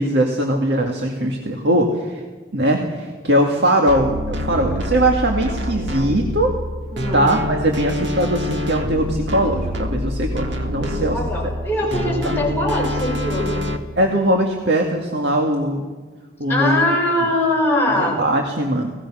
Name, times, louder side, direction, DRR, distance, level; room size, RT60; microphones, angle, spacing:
voice 1, 0.0-2.2 2.5-6.6 7.1-11.2 11.9-12.3 14.0-15.8 16.4-16.8 17.9-18.9, right 1 dB, 70° right, 2 dB, 2.1 m, -20 dB
sound 1, 3.9-13.8, left 1 dB, 85° right, 2.0 m, -26 dB
voice 2, 6.9-7.3 10.8-13.6 16.5-18.2, left 1 dB, 10° left, -4 dB, 6.8 m, -22 dB
30.0 x 19.0 x 6.2 m, 1.4 s
head